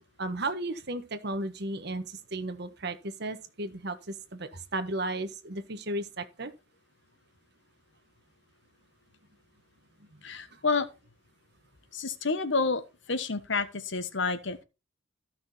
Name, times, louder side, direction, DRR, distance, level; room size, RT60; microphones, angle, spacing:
voice 1, 0.2-6.5 10.0-10.1 10.5-10.6, right 2 dB, 55° right, 1.4 m, -34 dB
voice 2, 10.2-10.9 11.9-12.8 13.1-14.6, left 4 dB, 65° left, 1.2 m, -29 dB
14.5 x 6.1 x 4.2 m
head